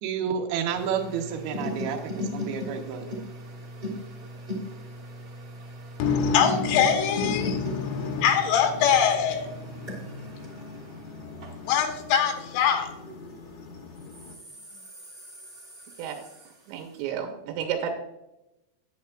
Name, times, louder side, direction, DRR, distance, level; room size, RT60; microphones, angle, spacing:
voice 1, 0.0-3.1, right 7 dB, 70° right, 3 dB, 2.6 m, -30 dB
sound 1, 0.7-13.4 13.9-16.8, left 1 dB, 25° right, 2.3 m, -38 dB
voice 2, 6.0-14.4, left 7 dB, 85° left, 4 dB, 3.4 m, -25 dB
voice 3, 16.7-17.9, right 8 dB, 85° right, 4 dB, 3.3 m, -31 dB
10.5 x 9.4 x 2.4 m, 0.91 s
omnidirectional pair, 5.7 m